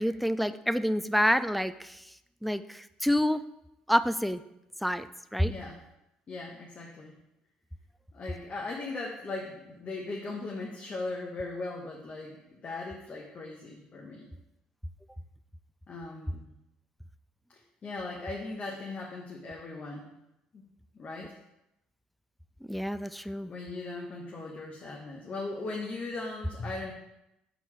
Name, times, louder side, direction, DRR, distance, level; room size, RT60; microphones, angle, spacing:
voice 1, 0.0-2.0 2.4-3.4 3.9-4.4 4.8-5.5 22.7-23.5, equal, ahead, 12 dB, 0.3 m, -28 dB
voice 2, 5.4-5.8 6.3-7.1 8.1-14.3 15.9-16.5 17.8-20.1 20.5-20.6 20.9-21.4 23.5-26.9, left 3 dB, 40° left, -2 dB, 1.1 m, -38 dB
5.8 x 4.1 x 4.6 m, 0.87 s
hypercardioid pair, 65°, 3 cm